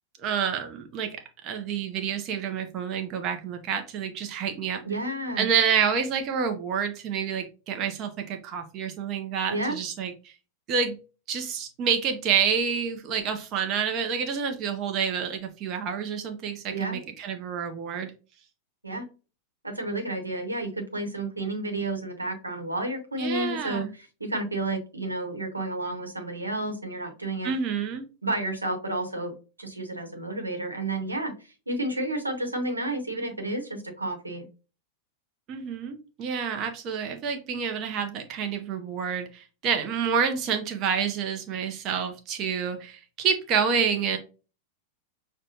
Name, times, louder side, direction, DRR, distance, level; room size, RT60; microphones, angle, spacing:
voice 1, 0.2-1.1 1.4-4.8 5.4-10.3 10.7-11.0 11.3-18.1 23.2-23.9 27.4-28.0 35.5-44.2, right 7 dB, 35° right, 5 dB, 0.6 m, -28 dB
voice 2, 4.8-5.5 9.5-9.8 16.7-17.0 18.8-19.1 19.6-27.5 28.2-34.5, right 2 dB, 80° right, 4 dB, 0.9 m, -31 dB
6.1 x 2.2 x 2.7 m, 0.33 s
figure-of-eight pair, 90°, 0 cm